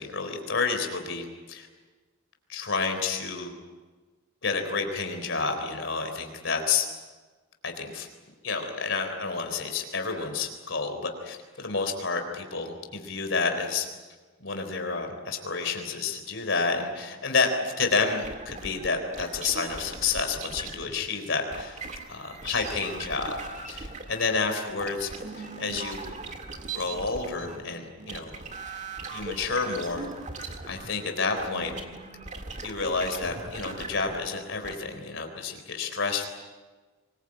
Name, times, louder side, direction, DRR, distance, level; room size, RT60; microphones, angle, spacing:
voice 1, 0.0-1.7 2.5-3.5 4.4-6.9 7.6-8.1 8.4-13.9 14.4-21.8 22.1-23.3 23.7-26.0 26.7-28.3 29.1-30.1 30.7-31.7 32.6-36.3, left 4 dB, 55° left, 5 dB, 3.9 m, -30 dB
sound 1, 18.2-21.1 21.5-34.7, right 3 dB, 35° right, 1.8 m, -40 dB
24.0 x 21.5 x 8.8 m, 1.3 s
head